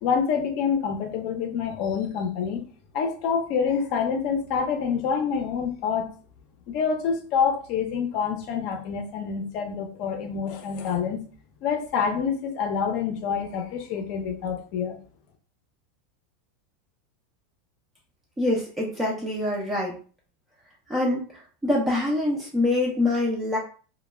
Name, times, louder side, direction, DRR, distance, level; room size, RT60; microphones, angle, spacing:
voice 1, 0.0-2.6 2.9-6.1 6.7-11.2 11.6-15.0, left 6 dB, 45° left, 4 dB, 0.5 m, -27 dB
voice 2, 18.4-19.9 20.9-21.3 21.6-23.6, left 2 dB, 10° right, -3 dB, 0.4 m, -25 dB
2.2 x 2.1 x 3.1 m, 0.40 s
supercardioid pair, 165°, 0 cm